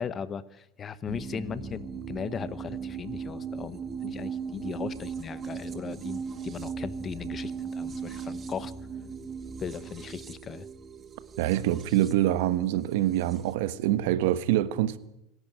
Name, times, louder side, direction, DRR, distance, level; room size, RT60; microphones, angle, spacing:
voice 1, 0.0-8.7 9.6-10.7, left 7 dB, 30° left, 1.0 m, -37 dB
sound 1, 1.1-13.5, right 6 dB, 25° right, 1.3 m, -38 dB
voice 2, 11.4-15.0, right 13 dB, 75° right, 1.3 m, -25 dB
26.0 x 11.5 x 9.3 m
supercardioid pair, 125°, 0 cm